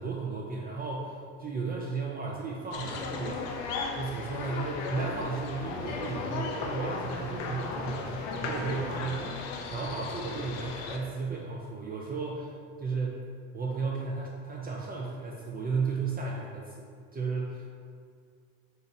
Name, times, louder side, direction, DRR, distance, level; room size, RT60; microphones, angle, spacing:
voice 1, 0.0-3.5 3.9-9.3 9.7-12.5 12.8-13.2 13.5-17.7, right 4 dB, 25° right, -3 dB, 0.4 m, -34 dB
sound 1, 2.7-11.0, left 4 dB, 75° left, 0.5 m, -36 dB
3.8 x 2.9 x 2.6 m, 2.1 s
hypercardioid pair, 75°, 36 cm